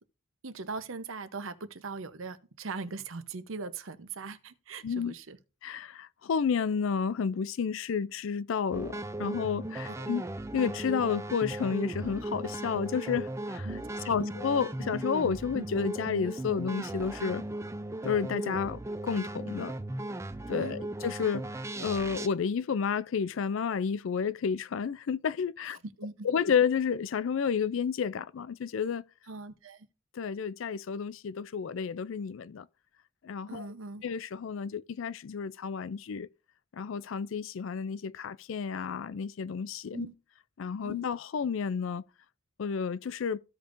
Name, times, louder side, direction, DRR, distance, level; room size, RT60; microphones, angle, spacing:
voice 1, 0.4-5.4 10.0-10.1 13.6-14.3 20.6-20.8 26.0-26.3 29.3-29.9 33.5-34.0 39.9-40.1 40.8-41.1, right 4 dB, 75° right, 0.8 m, -40 dB
voice 2, 4.8-5.1 5.6-10.2 10.5-13.7 14.1-17.4 18.0-19.7 20.5-21.4 21.8-25.8 26.2-29.0 30.2-32.7 33.2-33.7 34.0-36.3 36.7-40.1 40.6-42.0 42.6-43.4, left 6 dB, 70° left, 0.4 m, -31 dB
sound 1, 8.7-22.3, right 1 dB, 15° right, 0.4 m, -37 dB
15.0 x 5.2 x 2.6 m
head